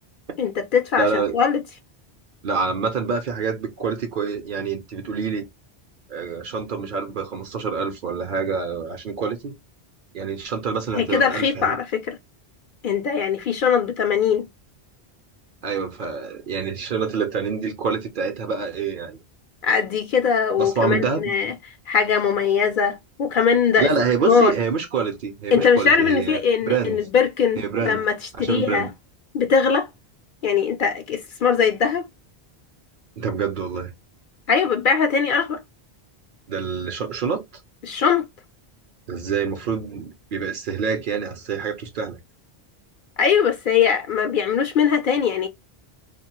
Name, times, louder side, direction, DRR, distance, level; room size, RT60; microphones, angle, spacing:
voice 1, 0.4-1.6 10.9-12.2 12.8-14.5 19.6-21.5 21.9-23.9 24.2-24.5 25.5-28.9 29.3-29.9 30.4-32.1 34.5-35.6 37.8-38.3 43.2-45.5, left 6 dB, 60° left, 0.6 m, -20 dB
voice 2, 1.0-1.4 2.4-5.4 6.1-9.5 10.1-11.8 15.6-19.2 20.6-21.3 23.8-27.0 27.6-28.1 28.4-28.9 33.2-33.9 36.5-37.4 39.1-42.2, right 5 dB, 55° right, 0.7 m, -26 dB
2.6 x 2.2 x 2.9 m
omnidirectional pair, 1.1 m